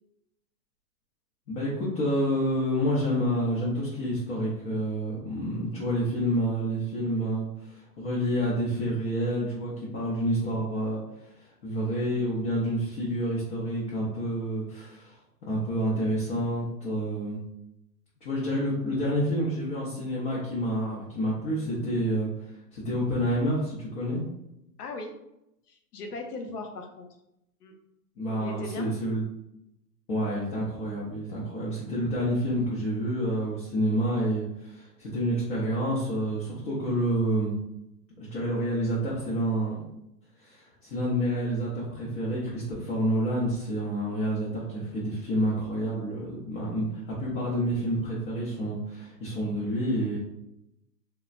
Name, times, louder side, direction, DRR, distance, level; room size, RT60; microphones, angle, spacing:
voice 1, 1.5-11.3 11.6-15.2 15.5-17.4 18.2-24.2 28.2-29.2 30.1-37.5 38.3-39.8 40.4-50.2, equal, 30° left, -7 dB, 0.8 m, -28 dB
voice 2, 24.8-25.1 25.7-27.1 27.6-27.7 28.4-28.9, left 2 dB, 70° left, 4 dB, 0.7 m, -38 dB
3.1 x 2.2 x 2.4 m, 0.84 s
hypercardioid pair, 140°, 48 cm